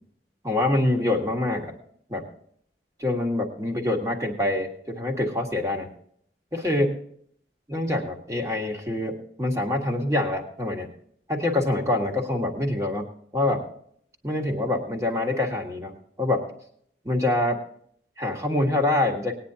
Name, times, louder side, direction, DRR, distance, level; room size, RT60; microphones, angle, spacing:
voice 1, 0.4-1.7 2.1-2.3 3.0-5.9 6.5-6.9 7.7-10.9 11.3-13.1 13.3-13.6 14.2-15.9 16.2-16.5 17.0-17.6 18.2-19.3, left 1 dB, 15° right, 2 dB, 1.7 m, -25 dB
19.5 x 9.6 x 2.8 m, 0.63 s
head